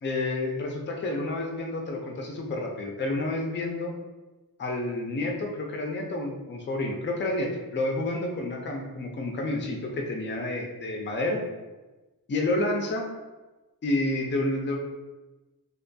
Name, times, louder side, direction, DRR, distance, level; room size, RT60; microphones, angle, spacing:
voice 1, 0.0-3.9 4.6-11.4 12.3-13.1 13.8-14.8, left 2 dB, 30° left, 1 dB, 0.4 m, -29 dB
2.6 x 2.5 x 2.2 m, 1.1 s
wide cardioid pair, 110°, 38 cm